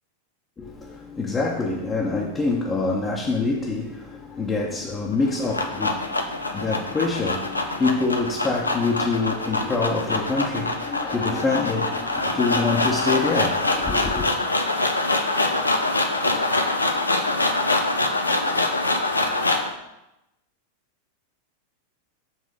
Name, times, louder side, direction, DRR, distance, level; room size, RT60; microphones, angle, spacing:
voice 1, 0.6-14.3, left 3 dB, 20° left, 0.9 m, -26 dB
sound 1, 5.1-19.7, left 2 dB, 80° left, 0.6 m, -24 dB
7.3 x 3.6 x 4.9 m
figure-of-eight pair, 90°, 0 cm